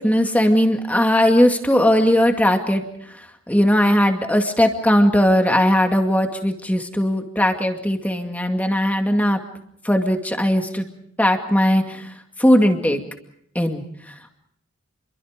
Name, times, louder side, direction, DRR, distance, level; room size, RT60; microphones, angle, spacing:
voice 1, 0.0-2.8 3.1-3.2 3.5-9.4 9.8-10.9 11.2-12.1 12.4-13.0 13.5-14.3, equal, 10° left, 4 dB, 2.2 m, -18 dB
29.5 x 23.0 x 5.2 m, 0.73 s
head